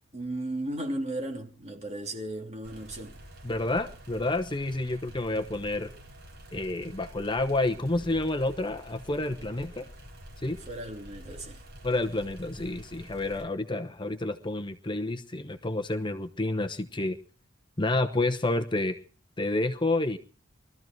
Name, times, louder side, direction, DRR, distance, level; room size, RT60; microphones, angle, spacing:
voice 1, 0.1-3.2 10.7-11.6, right 1 dB, 35° right, 3.0 m, -35 dB
sound 1, 2.6-13.4, equal, 55° right, 4.8 m, -48 dB
voice 2, 3.4-5.9 6.5-9.9 10.4-10.6 11.8-17.2 17.8-19.0 19.4-20.2, left 2 dB, 25° left, 0.9 m, -29 dB
22.0 x 13.5 x 4.5 m
head